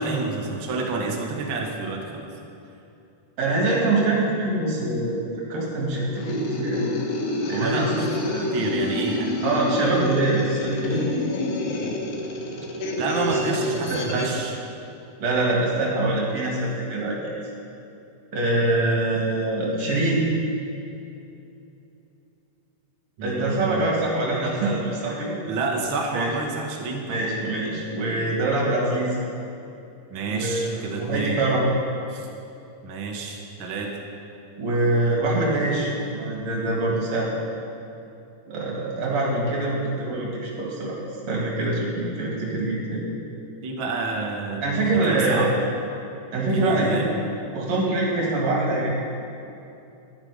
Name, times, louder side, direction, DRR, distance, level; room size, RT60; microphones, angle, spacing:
voice 1, 0.0-2.3 7.5-9.3 13.0-14.6 23.2-23.9 25.4-27.3 30.1-31.4 32.1-32.3 32.8-34.0 43.6-45.6 46.5-47.1, right 3 dB, 75° right, 1 dB, 1.1 m, -29 dB
voice 2, 3.4-6.9 7.5-8.4 9.4-11.0 13.3-13.4 13.9-14.3 15.2-17.3 18.3-20.3 23.2-25.4 26.1-26.3 27.1-29.2 30.3-31.6 34.6-37.3 38.5-41.0 41.3-43.1 44.6-45.6 46.3-47.0 47.5-48.9, right 2 dB, 50° right, -3 dB, 3.3 m, -24 dB
sound 1, 6.2-14.4, left 2 dB, 85° left, 3.0 m, -28 dB
11.5 x 10.5 x 5.1 m, 2.8 s
omnidirectional pair, 4.0 m